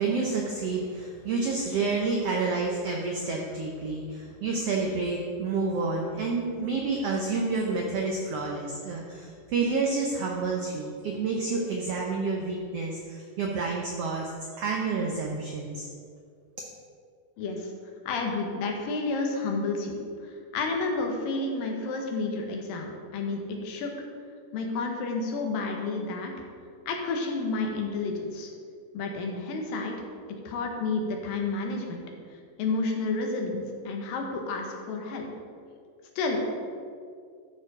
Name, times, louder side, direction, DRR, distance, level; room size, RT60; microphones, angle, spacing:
voice 1, 0.0-14.3 14.6-15.9, right 4 dB, 90° right, 0 dB, 1.3 m, -29 dB
voice 2, 17.4-17.7 18.1-20.0 20.5-23.9 24.5-26.3 26.9-28.5 28.9-30.0 30.5-32.0 32.6-35.3 36.2-36.4, left 3 dB, 85° left, 2 dB, 2.8 m, -30 dB
12.5 x 4.7 x 4.9 m, 2.2 s
omnidirectional pair, 3.9 m